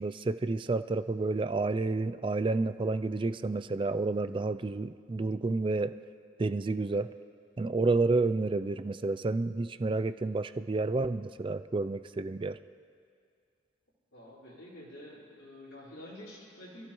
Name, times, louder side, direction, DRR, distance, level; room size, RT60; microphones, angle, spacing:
voice 1, 0.0-5.9 6.4-7.1 7.6-12.6, right 3 dB, 25° right, 12 dB, 0.3 m, -30 dB
voice 2, 14.1-16.9, left 1 dB, 80° left, -8 dB, 4.9 m, -48 dB
27.0 x 14.5 x 3.1 m, 2.2 s
head